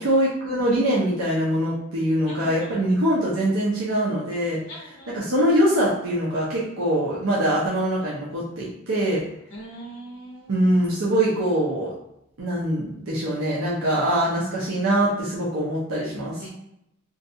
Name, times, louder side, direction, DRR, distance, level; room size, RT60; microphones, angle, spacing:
voice 1, 0.0-9.2 10.5-11.9 12.4-16.4, right 1 dB, 85° right, -6 dB, 0.6 m, -23 dB
voice 2, 2.3-2.8 4.7-5.3 9.5-10.5 16.4-16.5, right 1 dB, 90° left, -5 dB, 0.6 m, -40 dB
2.6 x 2.3 x 2.6 m, 0.79 s
head